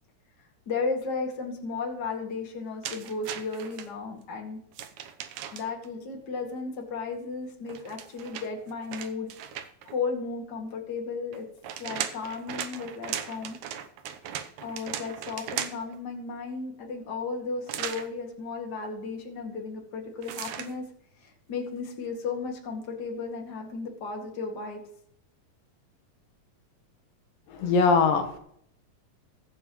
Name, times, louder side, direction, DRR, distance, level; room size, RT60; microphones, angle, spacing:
voice 1, 0.7-4.6 5.5-9.3 9.5-11.4 11.8-13.6 14.6-20.8 21.2-24.8, left 4 dB, 35° left, 1 dB, 2.3 m, -34 dB
sound 1, 2.8-3.9 4.7-5.9 7.7-9.9 11.3-16.0 17.7-18.1 20.2-20.7, right 10 dB, 70° right, 2.0 m, -37 dB
voice 2, 27.5-28.4, left 4 dB, 80° left, 6 dB, 2.9 m, -22 dB
21.5 x 7.5 x 3.1 m, 0.69 s
omnidirectional pair, 4.0 m